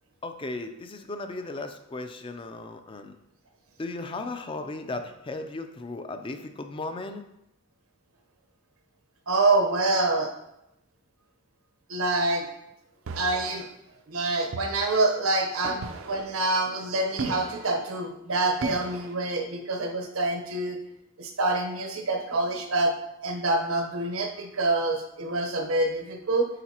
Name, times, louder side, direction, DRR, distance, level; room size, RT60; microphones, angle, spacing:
voice 1, 0.2-3.2 3.8-7.2 15.6-15.8, left 2 dB, 25° left, 7 dB, 0.4 m, -36 dB
voice 2, 9.3-10.3 11.9-12.5 13.2-13.7 14.1-20.8 21.2-22.9 23.2-26.5, right 2 dB, 85° right, 3 dB, 0.9 m, -26 dB
sound 1, 13.1-13.6 14.5-14.9 15.8-16.3 17.2-17.7 18.6-19.1, right 3 dB, 65° right, 0.5 m, -35 dB
9.0 x 3.9 x 2.9 m, 0.85 s
head